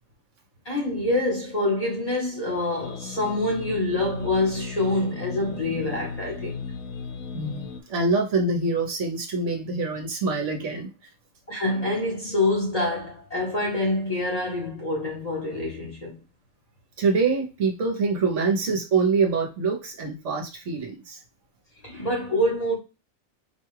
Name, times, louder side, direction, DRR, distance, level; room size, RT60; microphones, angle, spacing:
voice 1, 0.6-6.6 11.5-16.2 21.8-22.8, left 2 dB, 30° left, 1.0 m, -26 dB
sound 1, 2.8-7.8, left 5 dB, 90° left, 1.1 m, -36 dB
voice 2, 7.3-10.9 17.0-21.2, right 4 dB, 65° right, 1.1 m, -25 dB
4.6 x 2.3 x 3.1 m
omnidirectional pair, 1.5 m